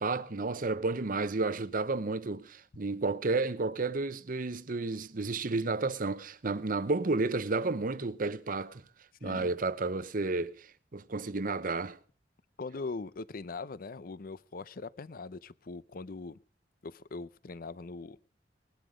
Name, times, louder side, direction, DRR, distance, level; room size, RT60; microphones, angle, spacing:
voice 1, 0.0-8.8 9.2-12.0, right 3 dB, 50° right, 0.8 m, -32 dB
voice 2, 12.6-16.4 16.8-18.2, left 3 dB, 55° left, 0.6 m, -41 dB
20.0 x 11.5 x 5.0 m
head